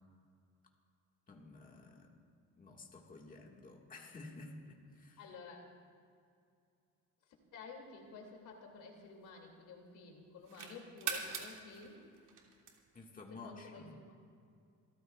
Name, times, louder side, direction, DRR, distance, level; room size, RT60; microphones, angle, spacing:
voice 1, 1.3-2.2 2.6-5.3 12.9-14.0, left 3 dB, 25° left, 0 dB, 1.7 m, -52 dB
voice 2, 5.2-5.7 7.5-12.0 13.3-14.1, left 4 dB, 75° left, 1 dB, 2.5 m, -52 dB
sound 1, 8.0-9.7 10.2-13.1, right 7 dB, 75° right, 2.3 m, -44 dB
26.5 x 14.0 x 2.4 m, 2.4 s
cardioid pair, 115°, 32 cm